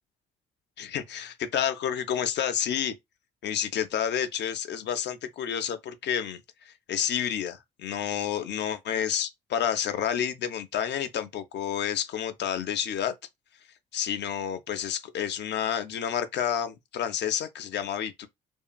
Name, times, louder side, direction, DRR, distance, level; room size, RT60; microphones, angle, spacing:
voice 1, 0.8-2.9 3.4-6.4 6.7-13.1 13.9-18.3, left 9 dB, 55° left, 0.6 m, -30 dB
2.7 x 2.4 x 2.3 m
hypercardioid pair, 45°, 21 cm